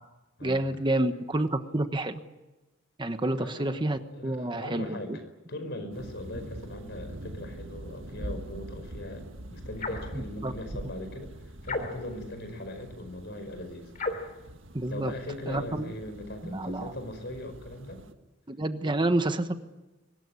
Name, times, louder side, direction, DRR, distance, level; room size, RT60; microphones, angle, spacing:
voice 1, 0.4-2.2 3.0-5.2 10.1-10.5 14.7-15.1 15.5-15.9 16.4-16.9 18.5-19.6, right 1 dB, 25° right, 8 dB, 1.2 m, -29 dB
voice 2, 3.3-3.8 4.1-5.2 5.5-11.3 11.6-13.9 14.9-18.0 18.8-18.9, left 1 dB, 60° left, 8 dB, 5.1 m, -40 dB
sound 1, 5.9-18.1, right 1 dB, 80° right, 1.6 m, -44 dB
sound 2, 9.8-10.2 11.6-12.2 13.9-14.4, left 2 dB, 45° left, 3.1 m, -34 dB
23.5 x 19.5 x 9.8 m, 1.1 s
head